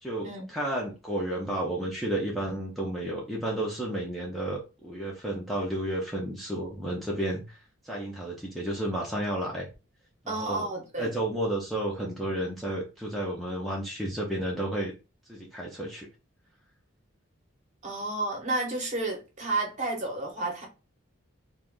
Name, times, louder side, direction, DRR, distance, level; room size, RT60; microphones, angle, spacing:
voice 1, 0.0-7.6 7.8-9.7 10.2-10.7 11.0-14.9 15.3-16.1, right 1 dB, ahead, 0.4 m, -32 dB
voice 2, 10.3-11.1 17.8-20.7, right 2 dB, 35° right, 0.7 m, -31 dB
2.3 x 2.1 x 3.5 m
head